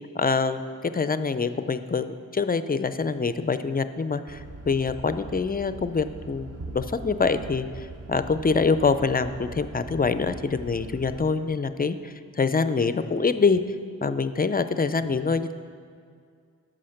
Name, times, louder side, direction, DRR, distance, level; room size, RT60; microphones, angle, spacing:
voice 1, 0.1-0.6 0.9-7.7 8.1-13.6 14.0-15.5, left 4 dB, 25° left, 12 dB, 0.4 m, -25 dB
sound 1, 4.3-11.2, right 2 dB, 40° right, 0.8 m, -41 dB
10.0 x 6.3 x 6.5 m, 2.3 s
wide cardioid pair, 100°, 36 cm